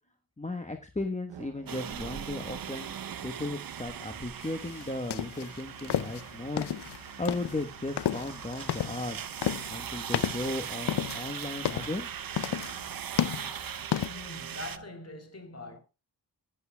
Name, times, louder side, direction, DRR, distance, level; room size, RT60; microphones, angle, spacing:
voice 1, 0.4-3.0 3.2-6.7 7.2-9.3 9.7-12.1, left 2 dB, 15° left, 1.1 m, -36 dB
Musical instrument, 1.3-14.8, right 9 dB, 85° right, 0.8 m, -53 dB
sound 1, 1.7-14.8, right 8 dB, 55° right, 0.8 m, -40 dB
sound 2, 4.4-14.1, left 11 dB, 70° left, 0.6 m, -32 dB
voice 2, 14.1-15.8, left 2 dB, 35° left, 3.7 m, -43 dB
16.5 x 8.1 x 2.2 m
cardioid pair, 55°, 43 cm